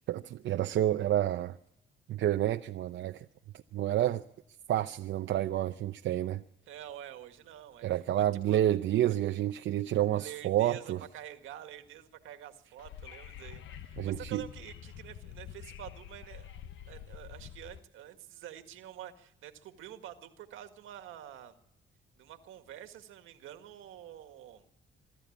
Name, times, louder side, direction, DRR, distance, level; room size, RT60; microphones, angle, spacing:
voice 1, 0.1-1.5 2.1-3.3 3.7-4.2 4.7-6.4 7.8-11.0 14.0-14.4, right 12 dB, 70° right, 0.7 m, -29 dB
voice 2, 6.7-7.9 8.2-8.6 10.1-16.5 16.9-21.6 22.2-24.7, right 11 dB, 90° right, 1.8 m, -48 dB
Wind / Subway metro underground, 12.8-17.8, left 10 dB, 75° left, 1.1 m, -47 dB
24.5 x 12.5 x 8.6 m
cardioid pair, 90°, 20 cm